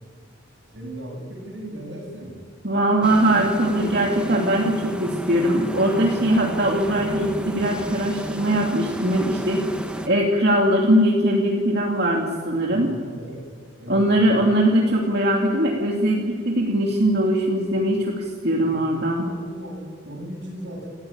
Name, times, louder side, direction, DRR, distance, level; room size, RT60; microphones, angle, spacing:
voice 1, 0.7-2.4 12.7-13.4 13.8-14.3 19.2-20.9, right 1 dB, 75° right, -3 dB, 7.6 m, -37 dB
voice 2, 2.6-9.7 10.1-12.9 13.9-19.3, right 1 dB, 55° right, -1 dB, 2.6 m, -21 dB
sound 1, 3.0-10.1, equal, 5° right, 1.5 m, -31 dB
28.0 x 15.0 x 8.9 m, 2.1 s
head